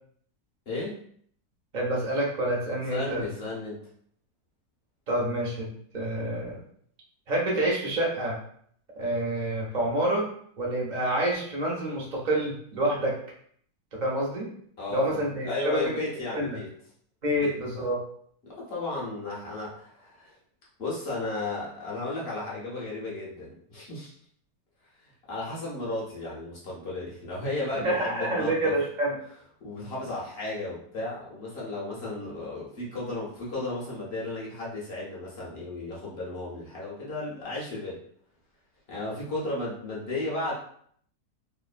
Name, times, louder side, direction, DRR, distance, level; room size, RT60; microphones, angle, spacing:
voice 1, 0.7-1.0 2.9-3.8 14.8-16.7 17.3-17.9 18.4-20.3 20.8-24.1 25.3-28.7 29.6-38.0 38.9-40.5, left 2 dB, 50° left, -6 dB, 0.9 m, -34 dB
voice 2, 1.7-3.3 5.1-5.7 5.9-6.6 7.3-8.4 9.0-10.3 10.6-13.1 13.9-14.5 14.9-15.8 16.3-16.6 17.2-18.0 27.8-29.2, right 1 dB, 50° right, -3 dB, 0.5 m, -27 dB
2.9 x 2.0 x 2.4 m, 0.62 s
omnidirectional pair, 1.7 m